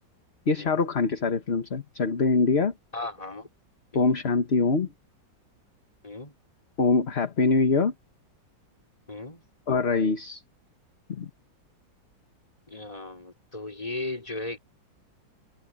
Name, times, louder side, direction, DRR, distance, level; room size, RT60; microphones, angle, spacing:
voice 1, 0.5-2.7 3.9-4.9 6.8-7.9 9.7-10.4 11.1-11.3, left 4 dB, 35° left, 1.5 m, -24 dB
voice 2, 2.9-3.5 3.9-4.2 6.0-6.3 9.1-9.4 12.7-14.6, left 2 dB, 20° left, 4.3 m, -36 dB
omnidirectional pair, 2.1 m